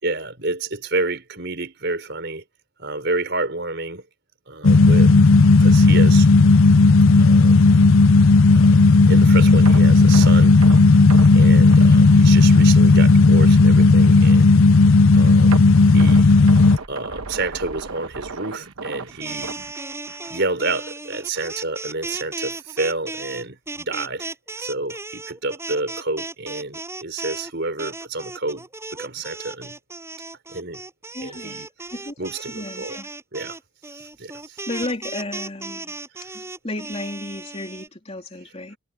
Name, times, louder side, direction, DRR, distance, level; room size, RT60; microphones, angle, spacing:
voice 1, 0.0-2.4 2.8-4.1 4.5-5.1 5.6-6.3 7.2-7.7 8.5-8.8 9.1-10.6 11.3-14.5 15.1-16.3 16.9-19.6 20.3-24.3 24.6-29.7 30.5-30.8 31.2-31.7 32.2-33.0 33.3-33.6 34.0-34.6 36.2-36.4, right 3 dB, 50° right, 5.5 m, -29 dB
sound 1, 4.6-16.8, left 3 dB, 70° left, 0.6 m, -13 dB
sound 2, 9.7-12.7 13.0-13.2 13.6-13.7 15.5-20.4 20.7-20.9 21.4-21.5, right 4 dB, 80° right, 1.2 m, -36 dB
sound 3, 19.1-27.5 27.8-37.9, right 3 dB, 10° right, 7.9 m, -35 dB
voice 2, 31.1-31.6 31.9-32.3 32.5-33.1 34.7-36.0 36.3-38.8, left 2 dB, 30° left, 3.4 m, -33 dB
head